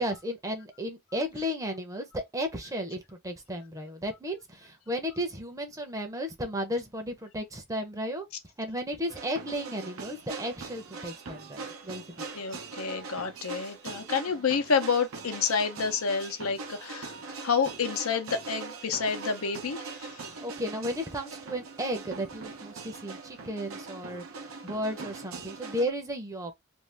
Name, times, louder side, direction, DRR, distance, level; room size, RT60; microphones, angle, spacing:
voice 1, 0.0-8.3 8.6-12.2 20.2-26.6, equal, 15° right, 0.6 m, -34 dB
sound 1, 9.1-25.9, right 4 dB, 75° right, 0.7 m, -42 dB
voice 2, 12.3-17.1 17.4-20.2, left 5 dB, 90° left, 0.7 m, -29 dB
2.6 x 2.4 x 3.3 m
head